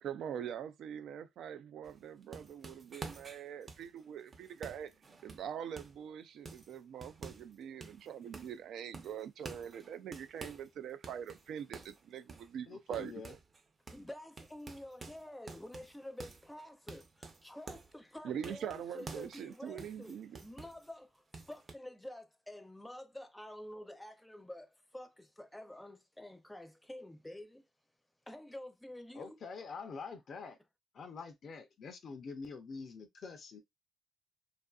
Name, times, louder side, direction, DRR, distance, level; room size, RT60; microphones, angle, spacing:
voice 1, 0.0-4.9 5.2-13.4 18.2-20.4, right 9 dB, 75° right, 0.3 m, -43 dB
sound 1, 1.8-6.0 6.5-7.5 7.8-8.6 8.9-10.7 11.0-13.6 13.9-14.1 14.4-18.0 18.4-20.9 21.3-21.7, right 3 dB, 35° right, 0.6 m, -50 dB
voice 2, 12.7-13.3 29.1-30.6 30.9-33.6, left 5 dB, 55° left, 0.4 m, -46 dB
voice 3, 13.9-27.6 28.3-29.4, left 1 dB, 5° left, 0.5 m, -49 dB
2.5 x 2.4 x 2.3 m
cardioid pair, 90°, 0 cm